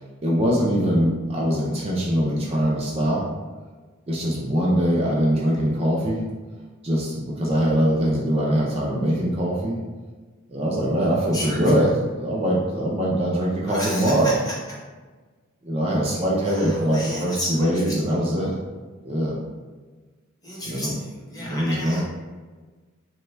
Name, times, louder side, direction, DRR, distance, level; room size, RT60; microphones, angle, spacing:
voice 1, 0.0-3.3 4.1-6.2 6.8-9.8 10.5-14.3 15.6-18.5 19.0-19.4 20.7-20.9 21.4-22.0, equal, 30° right, -4 dB, 0.4 m, -22 dB
voice 2, 11.3-11.8 13.7-14.6 16.5-18.2 20.4-22.0, left 1 dB, 15° left, -5 dB, 0.8 m, -33 dB
3.3 x 2.2 x 3.1 m, 1.4 s
head